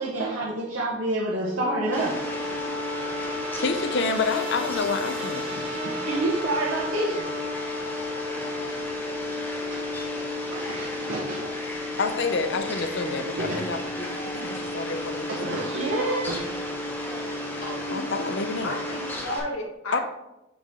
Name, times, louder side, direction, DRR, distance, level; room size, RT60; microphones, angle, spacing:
voice 1, 0.0-2.6 2.9-3.0 5.5-7.3 9.7-9.8 10.4-11.6 13.2-13.7 14.4-14.6 15.3-16.5, right 2 dB, 70° right, -4 dB, 1.0 m, -29 dB
sound 1, 1.4-19.1, left 2 dB, 25° right, 1.1 m, -34 dB
Fowl, 1.9-19.4, left 1 dB, 10° left, 0.8 m, -36 dB
voice 2, 3.6-5.5 12.0-15.7 17.9-18.7 19.9-20.0, left 4 dB, 55° left, 9 dB, 0.6 m, -29 dB
voice 3, 17.6-18.0 18.6-20.0, left 1 dB, 90° left, 0 dB, 1.4 m, -33 dB
5.7 x 5.1 x 3.6 m, 0.94 s
head